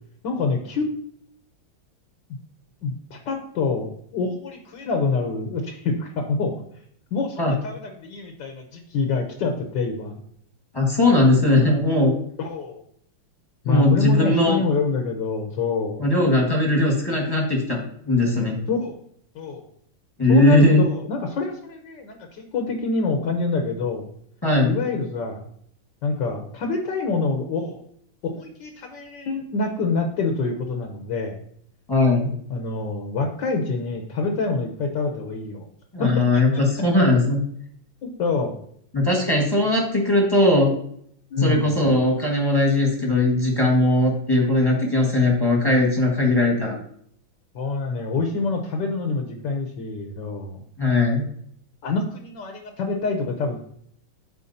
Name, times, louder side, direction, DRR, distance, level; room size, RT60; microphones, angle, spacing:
voice 1, 0.2-1.0 2.8-6.5 7.1-10.2 12.4-12.8 13.6-16.0 18.7-19.0 19.3-19.6 20.3-24.1 24.6-25.4 26.0-27.8 28.2-31.4 32.5-35.7 36.0-36.4 37.0-37.1 38.2-38.5 41.3-41.7 47.5-50.6 51.8-53.6, left 4 dB, 65° left, 4 dB, 1.5 m, -26 dB
voice 2, 10.7-12.1 13.6-14.6 16.0-17.8 18.0-18.6 20.2-20.8 24.4-24.8 31.9-32.3 35.9-37.4 38.9-40.7 41.4-46.8 50.8-51.2, left 2 dB, 10° left, -1 dB, 1.4 m, -19 dB
13.0 x 4.5 x 2.7 m, 0.66 s
omnidirectional pair, 2.2 m